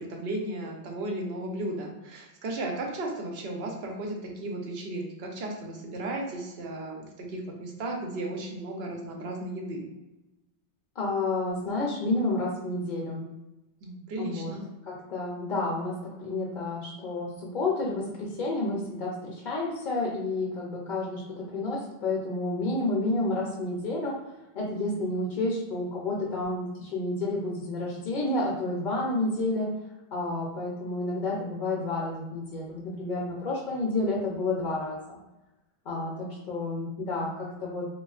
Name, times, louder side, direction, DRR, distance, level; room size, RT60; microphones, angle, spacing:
voice 1, 0.0-9.9 13.8-14.6, right 1 dB, 85° right, 1 dB, 0.9 m, -35 dB
voice 2, 11.0-13.2 14.2-14.5 14.9-29.7 30.1-35.2 35.9-37.9, left 2 dB, 55° left, -3 dB, 0.7 m, -30 dB
3.3 x 2.3 x 2.3 m, 1.0 s
omnidirectional pair, 1.0 m